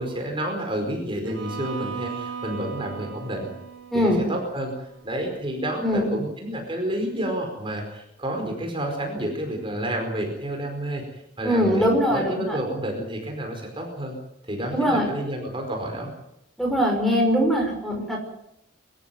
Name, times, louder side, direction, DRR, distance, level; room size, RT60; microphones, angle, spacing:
voice 1, 0.0-3.5 3.9-14.1 14.4-16.1, right 1 dB, 25° right, 2 dB, 4.8 m, -30 dB
Bowed string instrument, 1.2-5.3, right 6 dB, 80° right, 7.0 m, -38 dB
voice 2, 3.9-4.2 5.8-6.1 11.4-12.6 14.7-15.1 16.6-18.2, equal, ahead, 1 dB, 5.8 m, -22 dB
25.0 x 14.0 x 9.5 m, 0.79 s
head